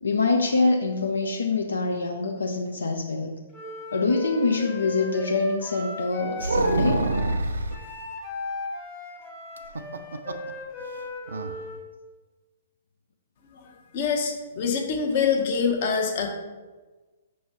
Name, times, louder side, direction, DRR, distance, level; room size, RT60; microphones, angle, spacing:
voice 1, 0.0-3.4 3.9-7.1, left 3 dB, 80° left, 2 dB, 0.5 m, -25 dB
Wind instrument woodwind instrument, 3.5-11.9, left 3 dB, 25° left, 1.4 m, -37 dB
sound 1, 6.4-7.8 9.6-10.5 10.8-10.9 11.3-11.5, right 2 dB, 75° right, 0.4 m, -25 dB
voice 2, 13.6-16.3, left 6 dB, 50° left, 3 dB, 1.0 m, -25 dB
6.0 x 3.1 x 5.5 m, 1.3 s
figure-of-eight pair, 120°, 0 cm